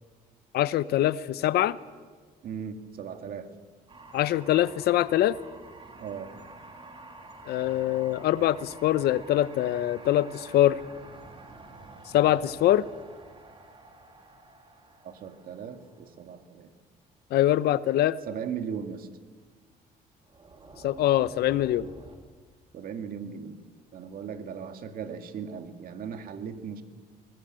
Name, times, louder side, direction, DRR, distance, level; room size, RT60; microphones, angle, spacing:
voice 1, 0.5-1.8 4.1-5.4 7.5-10.8 12.1-12.8 17.3-18.2 20.8-21.9, left 13 dB, 70° left, 17 dB, 0.8 m, -23 dB
voice 2, 2.4-3.5 6.0-6.3 15.0-16.7 18.3-19.1 22.7-23.6 23.9-26.8, right 7 dB, 60° right, 7 dB, 2.1 m, -37 dB
sound 1, 3.9-16.2 20.3-22.2, right 2 dB, 30° right, 3.4 m, -49 dB
21.5 x 19.5 x 7.6 m, 1.5 s
cardioid pair, 110°, 17 cm